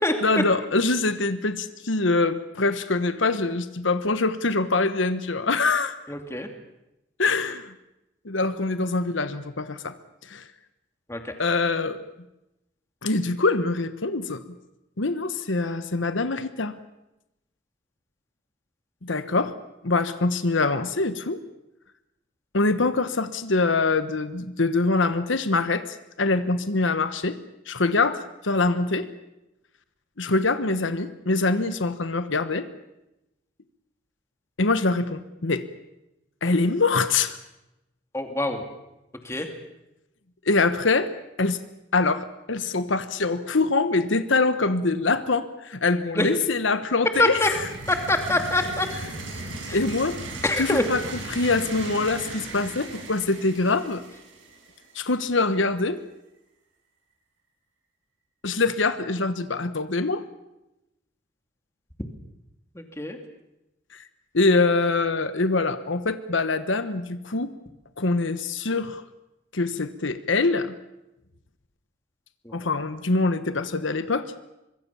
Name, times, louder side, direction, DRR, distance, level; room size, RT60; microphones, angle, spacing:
voice 1, 0.2-6.0 7.2-7.7 8.2-9.9 10.2-10.5 11.4-12.0 13.0-14.4 15.0-16.8 19.0-19.6 19.8-21.4 22.5-27.4 27.7-29.1 30.2-32.7 34.6-35.6 36.4-37.4 40.4-41.1 41.4-41.6 41.9-47.5 49.7-50.2 50.6-51.0 51.3-54.0 54.9-56.0 58.4-60.2 63.9-64.0 64.3-67.5 68.0-69.0 69.5-70.7 72.5-74.3, left 3 dB, 80° left, 11 dB, 1.2 m, -24 dB
voice 2, 6.1-6.5 11.1-11.3 38.1-38.7 39.2-39.5 46.1-46.3 47.2-47.5 47.9-48.9 49.7-49.8 50.4-50.8 62.7-63.2 72.4-72.8, left 1 dB, 15° left, 5 dB, 2.6 m, -25 dB
sound 1, 47.1-54.9, right 2 dB, 80° right, 7.5 m, -37 dB
25.0 x 22.5 x 7.1 m, 0.91 s
head